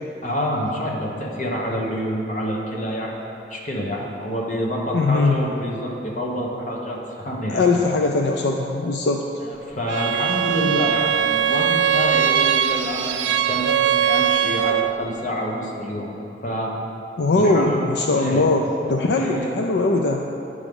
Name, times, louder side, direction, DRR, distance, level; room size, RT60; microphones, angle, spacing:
voice 1, 0.2-3.2 3.5-7.7 9.4-16.1 16.4-16.8 17.3-17.8 18.1-18.5 19.1-19.5, equal, 45° left, -2 dB, 1.1 m, -27 dB
voice 2, 4.9-5.4 7.5-9.2 17.2-20.2, left 3 dB, 75° left, 2 dB, 0.4 m, -20 dB
Bowed string instrument, 9.9-15.0, right 9 dB, 90° right, 0.3 m, -21 dB
9.9 x 4.9 x 5.3 m, 2.9 s
head